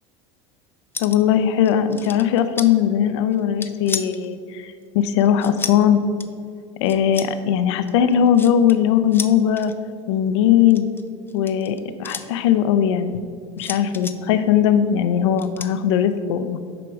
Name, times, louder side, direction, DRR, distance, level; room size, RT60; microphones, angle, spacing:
sound 1, 0.9-1.3 1.7-2.7 3.3-4.3 5.0-5.8 6.2-6.3 6.9-7.3 7.9-8.8 9.1-9.7 10.6-12.3 13.6-14.2 15.4-15.7, left 4 dB, 15° left, 0.5 m, -32 dB
voice 1, 1.0-6.0 6.8-9.7 10.1-10.9 11.3-13.2 13.6-16.6, left 9 dB, 75° left, 10 dB, 0.5 m, -19 dB
7.8 x 5.1 x 4.6 m, 2.3 s
supercardioid pair, 95°, 15 cm